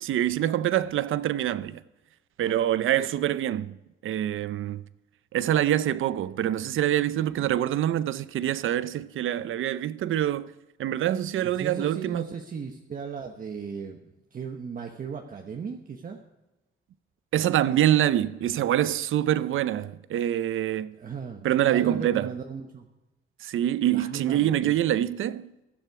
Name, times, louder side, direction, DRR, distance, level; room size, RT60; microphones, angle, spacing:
voice 1, 0.0-1.8 2.4-3.8 4.0-4.8 5.3-10.5 10.8-12.3 17.3-21.0 21.4-22.3 23.4-25.5, right 12 dB, 85° right, 0.6 m, -25 dB
voice 2, 11.4-16.2 20.9-22.9 23.9-24.7, right 6 dB, 45° right, 1.1 m, -37 dB
16.0 x 12.0 x 4.8 m
wide cardioid pair, 145°, 20 cm